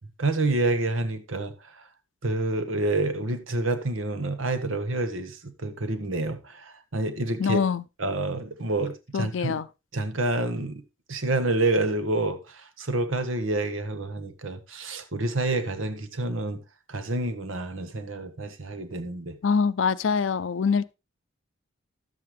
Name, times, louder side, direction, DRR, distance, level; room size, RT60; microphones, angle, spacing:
voice 1, 0.2-1.5 2.2-7.6 8.0-9.6 9.9-10.8 11.1-16.6 16.9-19.4, right 2 dB, 85° right, 1.2 m, -28 dB
voice 2, 7.4-7.8 9.1-9.7 19.4-20.9, left 5 dB, 70° left, 0.5 m, -24 dB
12.5 x 7.6 x 3.2 m
head